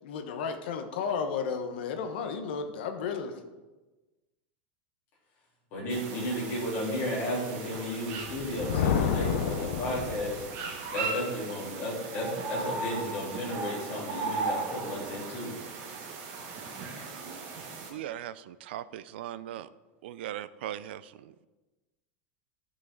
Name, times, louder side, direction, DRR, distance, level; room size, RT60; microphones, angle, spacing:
voice 1, 0.0-3.4, left 6 dB, 65° left, 6 dB, 1.2 m, -33 dB
voice 2, 5.7-10.4 10.9-15.5 16.9-17.0, left 1 dB, 35° left, -6 dB, 3.5 m, -33 dB
sound 1, 5.9-17.9, right 4 dB, 40° right, 1.7 m, -37 dB
Thunder, 8.2-10.7, left 7 dB, 90° left, 0.9 m, -29 dB
voice 3, 17.9-19.7 20.0-21.5, right 12 dB, 75° right, 16 dB, 0.4 m, -39 dB
12.0 x 6.4 x 3.8 m, 1.2 s
supercardioid pair, 175°, 6 cm